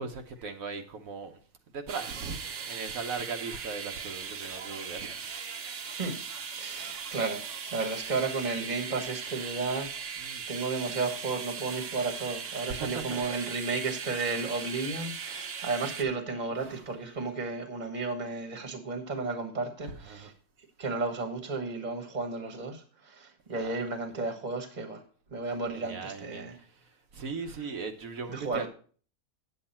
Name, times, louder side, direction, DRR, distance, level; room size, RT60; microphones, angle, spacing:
voice 1, 0.0-1.4 1.7-5.3 6.8-7.1 10.2-10.4 12.7-13.2 16.6-16.9 19.8-20.3 23.6-23.7 25.7-28.7, right 4 dB, 85° right, 1.4 m, -39 dB
sound 1, 1.9-16.0, right 6 dB, 65° right, 1.3 m, -39 dB
voice 2, 6.5-10.1 10.5-20.3 20.8-25.0 25.3-26.6 28.3-28.7, right 3 dB, 35° right, 1.4 m, -33 dB
8.9 x 8.0 x 4.3 m
omnidirectional pair, 1.4 m